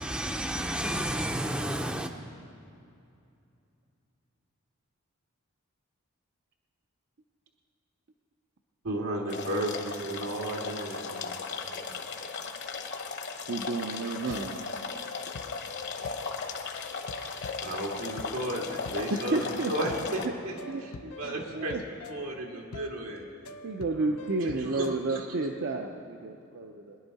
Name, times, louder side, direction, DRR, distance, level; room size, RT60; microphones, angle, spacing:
voice 1, 0.0-2.1, right 1 dB, 5° right, 5 dB, 0.5 m, -31 dB
voice 2, 8.8-11.3 14.0-14.4 17.6-20.5 20.8-23.3 24.0-25.3, right 1 dB, 90° right, -1 dB, 2.1 m, -34 dB
sound 1, 9.3-20.3, left 5 dB, 55° left, 1.0 m, -37 dB
voice 3, 13.5-14.7 19.1-19.7 20.7-20.8 21.2-21.8 22.5-22.7 23.6-27.0, right 3 dB, 55° right, 3 dB, 0.6 m, -31 dB
sound 2, 14.3-25.0, left 4 dB, 80° left, 0.6 m, -46 dB
21.5 x 10.5 x 4.1 m, 2.6 s
head